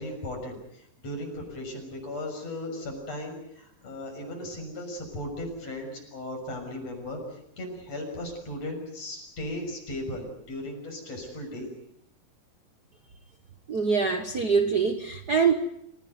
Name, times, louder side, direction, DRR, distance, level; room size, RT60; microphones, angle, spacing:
voice 1, 0.0-11.7, left 1 dB, 45° left, 2 dB, 7.7 m, -37 dB
voice 2, 13.7-15.5, right 5 dB, 85° right, 7 dB, 0.8 m, -24 dB
28.5 x 17.0 x 9.4 m, 0.77 s
omnidirectional pair, 4.0 m